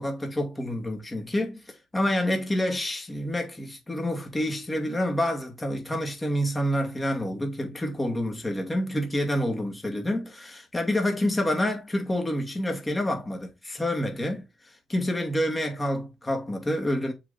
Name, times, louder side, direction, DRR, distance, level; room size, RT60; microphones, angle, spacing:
voice 1, 0.0-14.4 14.9-17.1, left 1 dB, 15° left, 2.2 m, -28 dB
7.0 x 4.0 x 4.2 m
cardioid pair, 90°, 0 cm